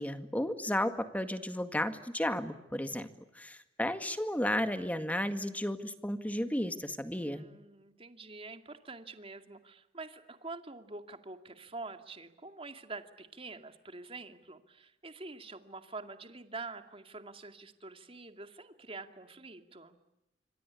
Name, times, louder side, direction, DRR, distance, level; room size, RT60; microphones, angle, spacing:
voice 1, 0.0-3.1 3.3-7.5, left 1 dB, 10° left, 9 dB, 1.9 m, -33 dB
voice 2, 7.2-20.0, right 3 dB, 30° right, 7 dB, 2.4 m, -46 dB
27.5 x 25.5 x 8.4 m, 0.94 s
head